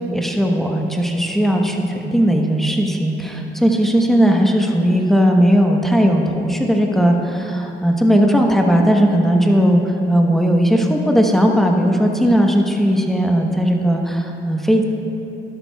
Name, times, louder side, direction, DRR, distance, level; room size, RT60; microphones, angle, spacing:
voice 1, 0.1-14.8, equal, ahead, 1 dB, 1.0 m, -17 dB
12.5 x 11.0 x 2.3 m, 2.8 s
cardioid pair, 90°, 20 cm